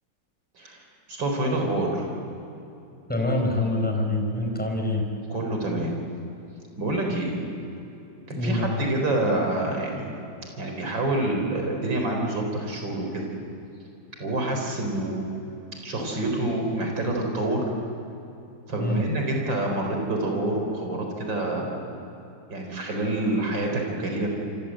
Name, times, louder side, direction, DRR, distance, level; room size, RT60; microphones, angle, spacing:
voice 1, 1.1-2.1 5.3-5.9 6.8-7.4 8.3-10.1 10.6-13.3 14.2-15.2 15.8-17.6 18.7-22.0 22.5-24.3, right 2 dB, 85° right, 1 dB, 5.1 m, -27 dB
voice 2, 3.1-5.1 8.4-8.9 18.8-19.1, left 2 dB, 5° left, 2 dB, 4.6 m, -25 dB
30.0 x 25.0 x 7.8 m, 2.9 s
omnidirectional pair, 2.0 m